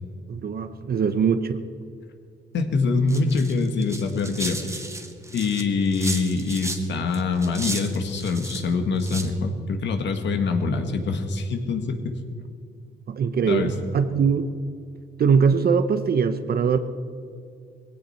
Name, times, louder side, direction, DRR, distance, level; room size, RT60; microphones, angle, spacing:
voice 1, 0.3-1.6 13.1-14.5 15.2-16.8, right 6 dB, 50° right, 10 dB, 0.8 m, -21 dB
voice 2, 2.5-4.8 5.3-12.0 13.5-13.7, left 4 dB, 65° left, 5 dB, 1.8 m, -24 dB
sound 1, 3.1-6.8 7.1-8.6 9.0-9.3, right 2 dB, 15° right, 1.5 m, -34 dB
18.5 x 16.5 x 4.4 m, 2.3 s
cardioid pair, 90°, 20 cm